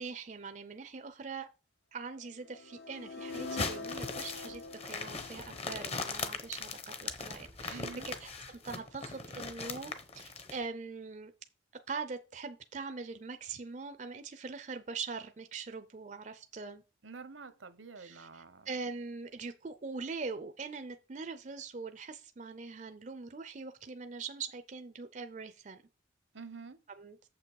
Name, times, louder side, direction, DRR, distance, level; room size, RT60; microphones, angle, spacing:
voice 1, 0.0-1.5 1.9-11.3 11.9-16.8 18.0-25.8 27.0-27.2, right 4 dB, 40° right, 0.5 m, -42 dB
sound 1, 2.4-6.5, left 4 dB, 55° left, 0.6 m, -45 dB
sound 2, 3.3-10.6, left 4 dB, 30° left, 0.9 m, -40 dB
voice 2, 7.7-8.1 17.0-18.7 26.3-26.8, right 4 dB, 80° right, 0.9 m, -48 dB
7.3 x 5.9 x 4.7 m
head